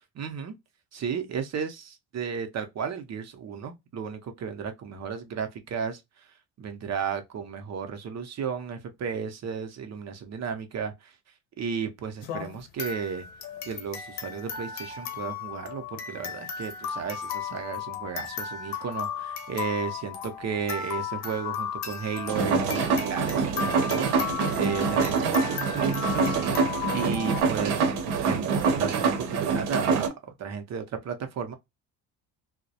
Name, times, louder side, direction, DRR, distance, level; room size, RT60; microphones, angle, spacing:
voice 1, 0.1-0.5 0.9-6.3 6.6-11.1 11.6-13.3 13.6-26.7 26.9-30.1 30.4-31.5, right 6 dB, 40° right, 0.6 m, -34 dB
sound 1, 12.2-27.4, left 7 dB, 75° left, 0.8 m, -35 dB
sound 2, 22.3-30.1, right 5 dB, 80° right, 0.7 m, -25 dB
2.2 x 2.1 x 2.6 m
supercardioid pair, 80°, 39 cm